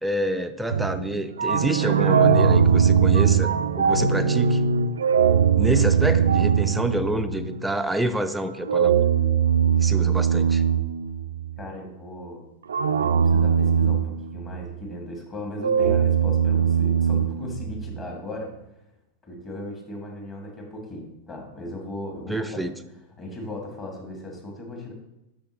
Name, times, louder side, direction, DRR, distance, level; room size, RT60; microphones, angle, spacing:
voice 1, 0.0-4.6 5.5-9.1 9.8-10.6 22.3-22.7, right 1 dB, 5° right, 8 dB, 0.4 m, -28 dB
sound 1, 0.7-7.7 8.6-11.6 12.7-14.8 15.6-18.0, right 7 dB, 70° right, 0.3 m, -21 dB
voice 2, 11.6-12.4 13.0-18.5 19.2-22.7 23.2-24.9, left 1 dB, 25° left, 1 dB, 1.9 m, -37 dB
8.2 x 6.2 x 3.0 m, 0.90 s
figure-of-eight pair, 90°, 0 cm